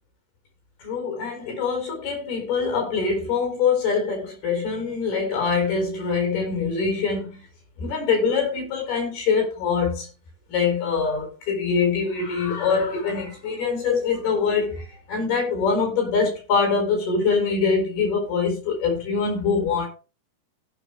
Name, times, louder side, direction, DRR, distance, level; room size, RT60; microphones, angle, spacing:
voice 1, 0.8-7.4 7.8-10.1 10.5-19.9, left 5 dB, 70° left, 6.6 m, -24 dB
16.0 x 6.1 x 3.3 m
omnidirectional pair, 4.6 m